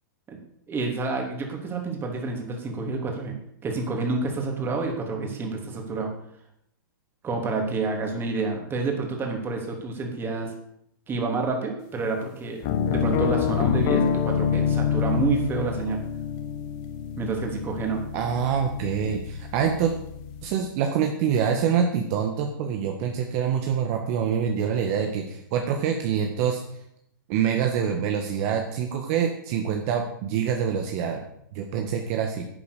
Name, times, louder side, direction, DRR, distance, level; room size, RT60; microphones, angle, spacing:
voice 1, 0.7-3.4 3.6-6.1 7.2-10.5 11.1-16.0 17.2-18.0, right 3 dB, 20° right, 2 dB, 3.2 m, -28 dB
sound 1, 12.6-20.5, left 7 dB, 40° left, 1.7 m, -27 dB
voice 2, 18.1-19.9 20.4-26.6 27.3-31.2 31.5-32.5, right 7 dB, 45° right, 3 dB, 1.7 m, -25 dB
11.0 x 8.7 x 6.9 m, 0.73 s
hypercardioid pair, 130°, 11 cm